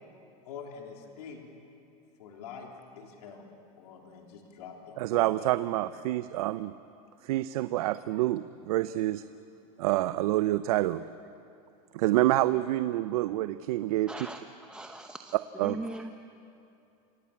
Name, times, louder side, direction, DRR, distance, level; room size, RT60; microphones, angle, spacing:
voice 1, 0.4-1.4 2.2-2.7 3.0-3.5 3.8-5.3, left 6 dB, 80° left, 1 dB, 3.7 m, -45 dB
voice 2, 5.0-6.7 7.2-9.2 9.8-11.1 11.9-14.1 15.6-15.8, right 16 dB, 70° right, 13 dB, 0.7 m, -27 dB
voice 3, 14.1-16.1, right 1 dB, 5° right, 4 dB, 0.8 m, -40 dB
28.0 x 18.0 x 8.6 m, 2.6 s
supercardioid pair, 135°, 19 cm